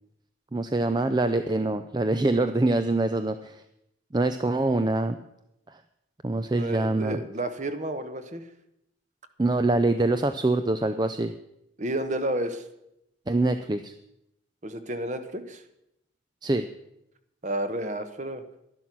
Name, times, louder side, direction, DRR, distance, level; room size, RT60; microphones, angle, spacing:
voice 1, 0.5-3.6 4.1-5.2 5.7-5.8 6.2-7.2 9.4-11.3 13.3-13.9 16.4-16.7, right 2 dB, 20° right, 9 dB, 0.4 m, -24 dB
voice 2, 6.6-8.4 11.8-12.6 14.6-15.6 17.4-18.4, right 1 dB, 40° right, 9 dB, 1.1 m, -31 dB
12.0 x 11.5 x 6.0 m, 0.82 s
head